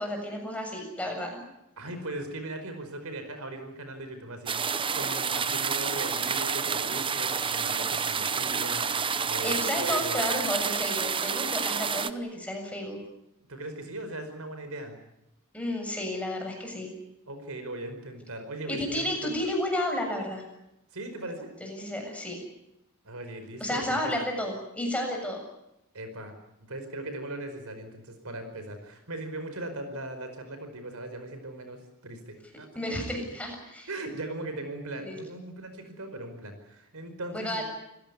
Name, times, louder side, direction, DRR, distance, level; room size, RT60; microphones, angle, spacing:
voice 1, 0.0-1.4 9.4-13.0 15.5-16.9 18.7-20.4 21.6-22.4 23.6-25.4 32.8-33.9 35.0-35.2 37.3-37.6, left 1 dB, 5° left, 2 dB, 7.2 m, -32 dB
voice 2, 1.8-10.3 13.5-15.0 17.3-19.3 20.9-21.5 23.0-24.1 25.9-26.4 26.7-33.0 33.9-37.6, right 2 dB, 70° right, 8 dB, 4.9 m, -39 dB
sound 1, 4.5-12.1, right 6 dB, 25° right, 0.8 m, -29 dB
28.0 x 17.0 x 9.7 m, 0.88 s
head